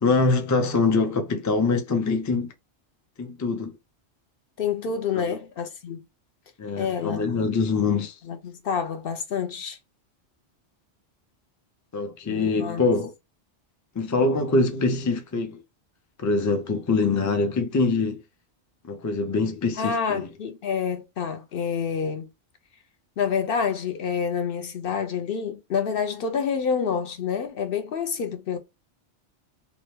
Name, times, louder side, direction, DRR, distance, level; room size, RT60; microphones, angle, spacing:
voice 1, 0.0-2.5 3.2-3.7 5.2-5.4 6.6-8.1 11.9-13.1 13.9-15.6 16.2-18.2 18.8-20.3, left 3 dB, 30° left, 0.3 m, -24 dB
voice 2, 4.6-6.0 6.8-7.5 8.3-9.8 12.3-12.8 19.8-22.3 23.2-28.6, left 6 dB, 60° left, 0.7 m, -28 dB
2.9 x 2.1 x 3.1 m
omnidirectional pair, 1.2 m